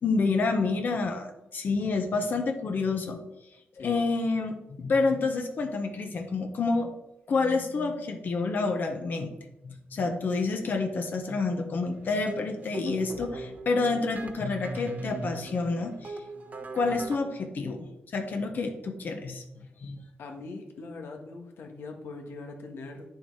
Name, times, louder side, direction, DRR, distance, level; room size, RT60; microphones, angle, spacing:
voice 1, 0.0-3.2 3.8-6.9 7.3-9.3 9.6-16.2 16.7-17.8 18.1-20.0, left 3 dB, 50° left, 5 dB, 1.2 m, -28 dB
sound 1, 11.9-17.2, right 2 dB, 40° right, 1.1 m, -40 dB
voice 2, 13.1-13.5 20.2-23.0, left 3 dB, 80° left, 3 dB, 1.6 m, -42 dB
9.4 x 7.0 x 4.8 m, 0.89 s
wide cardioid pair, 125°, 4 cm